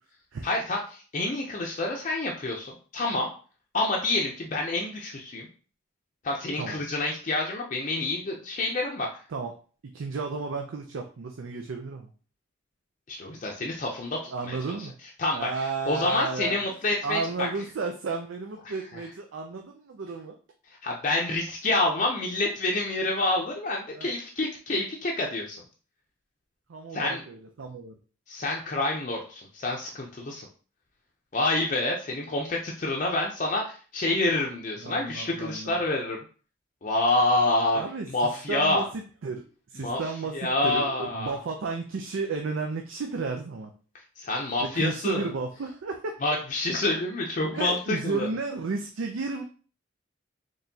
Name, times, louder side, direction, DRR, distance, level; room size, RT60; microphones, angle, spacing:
voice 1, 0.4-3.3 3.7-5.5 6.2-9.1 13.1-14.8 15.2-17.5 18.7-19.0 20.8-25.6 26.9-27.2 28.3-30.5 31.3-36.2 36.8-38.8 39.8-41.3 44.2-45.3 46.2-48.3, left 2 dB, 40° left, -1 dB, 0.5 m, -28 dB
voice 2, 9.9-12.1 14.3-14.9 15.3-16.6 17.0-20.4 23.9-24.1 26.7-28.0 34.8-35.8 37.7-38.1 38.5-39.4 39.7-43.7 44.6-46.2 47.5-49.4, right 4 dB, 80° right, 4 dB, 0.5 m, -33 dB
4.3 x 3.1 x 2.7 m, 0.39 s
head